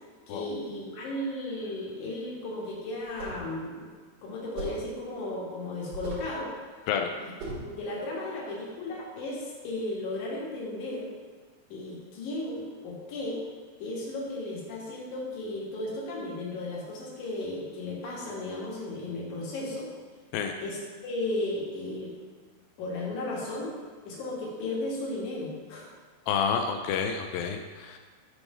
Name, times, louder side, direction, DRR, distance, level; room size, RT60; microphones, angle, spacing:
voice 1, 0.3-3.9 4.2-6.5 7.2-7.3 7.6-11.1 11.7-13.4 13.8-19.9 20.6-22.1 22.8-23.7 24.0-25.9, left 2 dB, 60° left, -4 dB, 2.4 m, -35 dB
sound 1, 3.0-3.5 4.6-4.9 5.9-6.3 7.4-7.7, right 3 dB, 65° right, 3.5 m, -37 dB
voice 2, 26.3-28.0, left 7 dB, 90° left, 4 dB, 2.0 m, -29 dB
9.6 x 3.2 x 5.2 m, 1.5 s
omnidirectional pair, 4.7 m